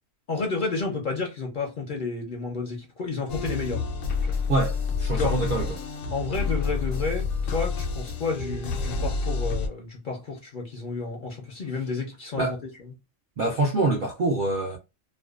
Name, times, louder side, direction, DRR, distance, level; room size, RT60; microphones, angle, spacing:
voice 1, 0.3-3.9 4.2-4.4 5.1-5.3 6.1-12.6, left 4 dB, 50° left, 0.6 m, -31 dB
sound 1, 3.3-9.7, left 4 dB, 75° left, 0.9 m, -28 dB
voice 2, 4.5-5.8 12.4-12.6 13.4-14.8, right 2 dB, 60° right, 0.5 m, -25 dB
2.5 x 2.2 x 2.3 m
omnidirectional pair, 1.3 m